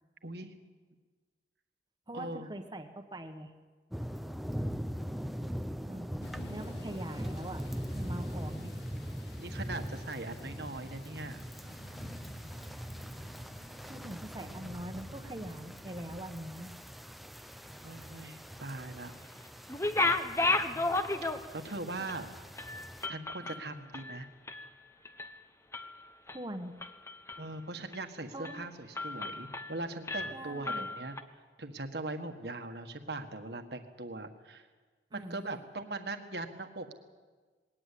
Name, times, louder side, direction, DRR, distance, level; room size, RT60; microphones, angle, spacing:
voice 1, 0.2-0.5 2.1-2.5 4.6-5.6 9.4-11.4 17.8-19.1 20.6-21.1 21.5-22.3 23.1-24.3 27.4-34.7 35.1-36.9, right 2 dB, 60° right, 7 dB, 1.6 m, -41 dB
voice 2, 2.1-3.5 5.9-6.1 6.5-7.6 7.9-8.7 13.9-16.8 22.0-22.1 23.4-23.6 26.3-26.8 28.3-28.7 30.3-30.9 35.1-35.4, right 1 dB, 25° right, 7 dB, 1.3 m, -43 dB
sound 1, 3.9-23.1, equal, ahead, 0.6 m, -41 dB
Thunder / Rain, 6.2-17.0, left 1 dB, 70° left, 2.1 m, -53 dB
sound 2, 19.7-21.7 22.1-22.2 22.6-24.7 25.1-25.4 25.7-26.4 26.8-27.5 27.9-28.1 28.5-28.6 29.0-29.8 30.1-31.2, left 2 dB, 15° left, 0.9 m, -33 dB
20.5 x 18.0 x 8.5 m, 1.4 s
head